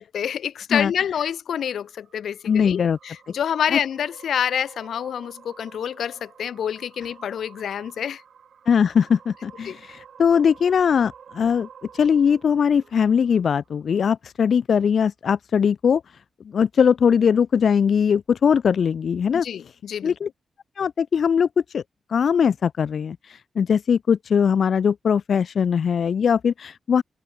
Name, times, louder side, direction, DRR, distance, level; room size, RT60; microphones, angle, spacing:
voice 1, 0.0-8.2 9.7-9.8 19.3-20.2, left 9 dB, 80° left, 3.7 m, -27 dB
sound 1, 1.5-14.0, right 7 dB, 65° right, 7.2 m, -50 dB
voice 2, 2.4-3.0 3.7-3.8 8.7-11.7 11.9-16.0 16.5-19.4 20.0-20.3 20.8-21.5 21.7-21.8 22.1-27.0, left 7 dB, 55° left, 1.6 m, -20 dB
wide cardioid pair, 160°, 0 cm